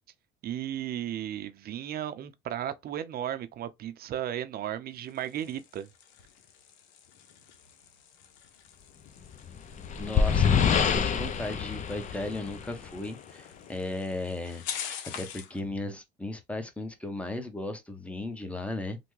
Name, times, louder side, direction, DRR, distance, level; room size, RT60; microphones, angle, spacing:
voice 1, 0.4-5.9, right 11 dB, 55° right, 0.6 m, -35 dB
sound 1, 4.9-15.6, left 8 dB, 85° left, 0.7 m, -45 dB
sound 2, 9.3-13.0, left 6 dB, 40° left, 0.6 m, -26 dB
voice 2, 10.0-19.0, left 2 dB, 5° left, 0.8 m, -36 dB
3.4 x 2.2 x 3.1 m
supercardioid pair, 95°, 19 cm